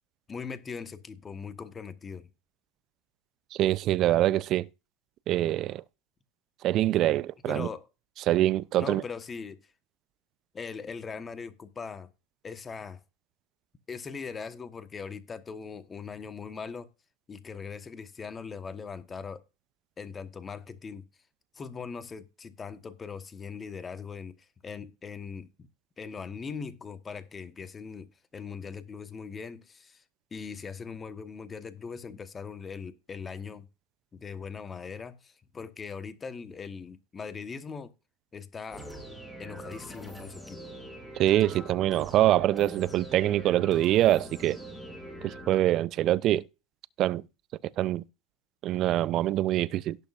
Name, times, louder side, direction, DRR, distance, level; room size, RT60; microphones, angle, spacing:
voice 1, 0.3-2.3 7.4-7.9 8.8-9.6 10.5-12.1 12.4-13.0 13.9-16.9 17.3-19.4 20.0-21.0 21.5-24.4 24.6-25.5 26.0-30.0 30.3-33.7 34.1-37.9 38.3-38.9 39.4-40.6, left 5 dB, 25° left, 1.2 m, -40 dB
voice 2, 3.5-4.7 5.3-5.8 6.6-7.7 8.3-9.0 41.2-44.6 45.2-46.4 47.0-47.2 47.8-48.0 48.6-50.0, right 13 dB, 45° right, 0.5 m, -24 dB
sound 1, 38.7-45.6, equal, 5° left, 5.1 m, -43 dB
17.5 x 6.4 x 2.5 m
hypercardioid pair, 85°, 0 cm